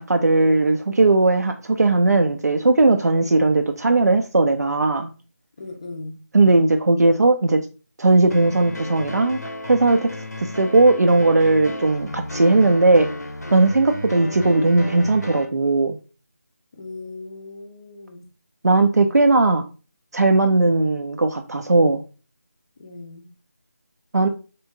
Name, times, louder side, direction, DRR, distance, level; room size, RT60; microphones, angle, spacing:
voice 1, 0.0-5.1 6.3-7.6 8.0-10.1 10.4-13.1 13.5-16.0 18.6-19.6 20.1-22.0 24.1-24.3, right 2 dB, 75° right, 5 dB, 0.4 m, -18 dB
voice 2, 5.6-6.1 16.7-18.2 22.8-23.3, left 3 dB, 20° left, 3 dB, 0.5 m, -37 dB
sound 1, 8.3-15.5, left 1 dB, 80° left, 0.7 m, -33 dB
3.4 x 2.7 x 2.7 m, 0.35 s
figure-of-eight pair, 160°, 9 cm